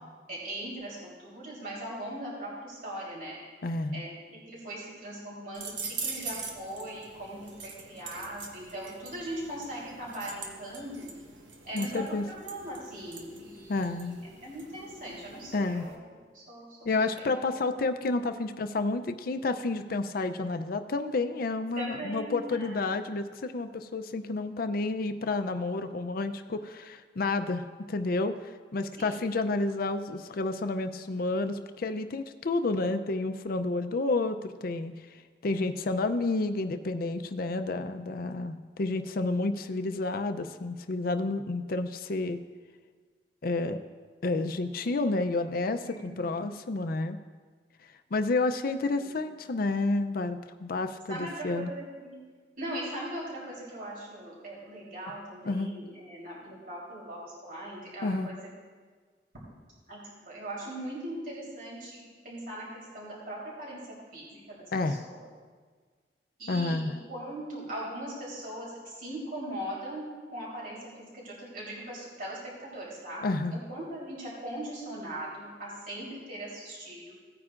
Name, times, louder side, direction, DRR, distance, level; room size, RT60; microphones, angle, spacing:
voice 1, 0.3-3.6 3.9-11.1 11.6-14.2 14.4-16.8 17.2-17.3 21.8-22.9 29.0-29.2 45.8-46.4 48.9-49.2 51.1-52.2 52.6-58.4 59.9-65.3 66.4-77.1, right 1 dB, 50° right, -6 dB, 3.5 m, -40 dB
voice 2, 3.6-4.0 11.7-12.2 13.7-14.2 15.5-15.9 16.8-34.9 35.4-42.4 43.4-43.8 44.2-47.2 48.1-51.7 55.4-55.7 58.0-58.3 64.7-65.1 66.5-66.9 73.2-73.6, left 3 dB, 55° left, 9 dB, 0.5 m, -30 dB
sound 1, 5.5-15.9, right 4 dB, 90° right, 1.2 m, -43 dB
17.0 x 9.5 x 2.5 m, 1.5 s
head